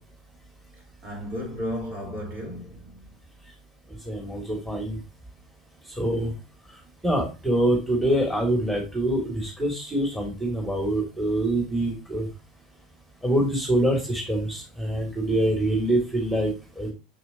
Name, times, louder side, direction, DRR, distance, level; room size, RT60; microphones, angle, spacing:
voice 1, 1.0-3.1, equal, 40° right, 4.4 m, -34 dB
voice 2, 4.1-5.0 6.0-6.3 7.0-12.3 13.2-16.9, right 1 dB, ahead, 2.8 m, -25 dB
6.9 x 6.5 x 3.0 m
hypercardioid pair, 80°, 4 cm